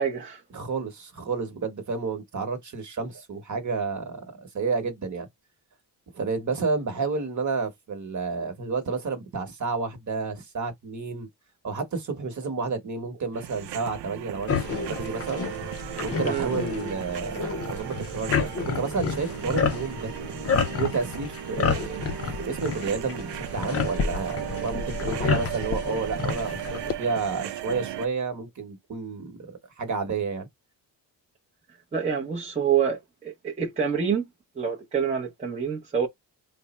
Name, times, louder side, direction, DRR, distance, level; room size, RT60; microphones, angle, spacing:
voice 1, 0.0-0.4 16.2-16.5 31.9-34.2 34.6-36.1, right 7 dB, 15° right, 0.6 m, -27 dB
voice 2, 0.5-5.3 6.1-11.3 11.6-15.5 16.0-17.3 17.7-20.1 20.7-22.1 22.4-30.5, right 4 dB, 45° right, 1.1 m, -30 dB
sound 1, 13.3-28.1, right 12 dB, 75° right, 0.6 m, -36 dB
sound 2, 14.5-26.9, left 6 dB, 35° left, 0.5 m, -30 dB
3.3 x 2.1 x 4.1 m
cardioid pair, 130°, 42 cm